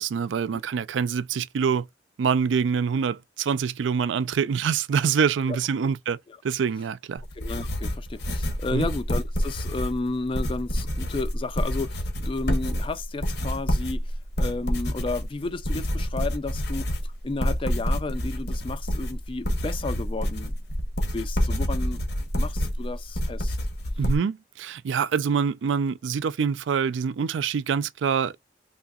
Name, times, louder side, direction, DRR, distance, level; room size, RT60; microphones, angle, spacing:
voice 1, 0.0-1.9 2.2-6.2 6.4-7.2 8.7-8.9 24.0-28.4, right 6 dB, 90° right, 0.4 m, -25 dB
sound 1, 7.2-24.2, equal, 65° left, 0.9 m, -28 dB
voice 2, 7.3-20.6 21.1-22.0 22.3-23.6, left 3 dB, 30° left, 0.3 m, -32 dB
3.6 x 2.7 x 2.3 m
head